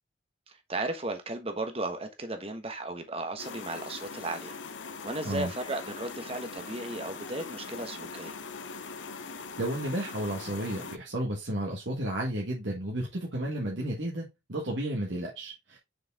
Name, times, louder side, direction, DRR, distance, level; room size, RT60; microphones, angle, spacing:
voice 1, 0.5-4.6 5.0-8.4, right 2 dB, 30° right, 1.2 m, -35 dB
sound 1, 3.4-11.0, left 4 dB, 75° left, 0.7 m, -41 dB
voice 2, 9.6-15.8, right 1 dB, 70° right, 1.5 m, -32 dB
6.3 x 4.8 x 3.6 m
head